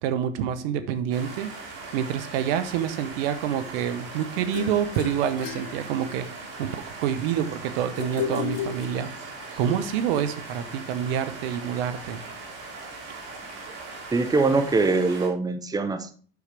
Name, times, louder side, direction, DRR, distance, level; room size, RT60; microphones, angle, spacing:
voice 1, 0.0-1.5 1.9-6.3 6.6-12.2, right 9 dB, 70° right, 11 dB, 0.9 m, -27 dB
sound 1, 1.1-15.3, right 3 dB, 50° right, 2.9 m, -40 dB
sound 2, 4.5-6.5 8.0-9.5, left 9 dB, 55° left, 1.2 m, -34 dB
voice 2, 14.1-16.1, right 3 dB, 10° right, 10 dB, 0.9 m, -23 dB
8.2 x 6.4 x 3.4 m, 0.43 s
hypercardioid pair, 90°, 30 cm